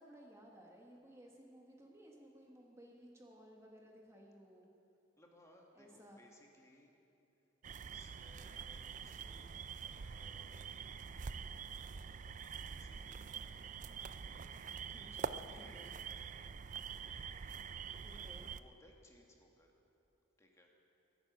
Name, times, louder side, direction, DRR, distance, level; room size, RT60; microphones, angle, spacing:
voice 1, 0.0-4.7 5.7-6.2 14.9-16.0 18.0-18.5, equal, 15° right, -1 dB, 1.2 m, -58 dB
voice 2, 5.2-6.9 7.8-10.7 12.6-14.0 14.3-16.3 16.9-17.7 18.6-19.8 20.4-20.7, left 1 dB, 15° left, 0 dB, 1.6 m, -65 dB
sound 1, 7.6-18.6, right 6 dB, 40° right, 0.4 m, -46 dB
22.5 x 9.4 x 6.0 m, 2.9 s
head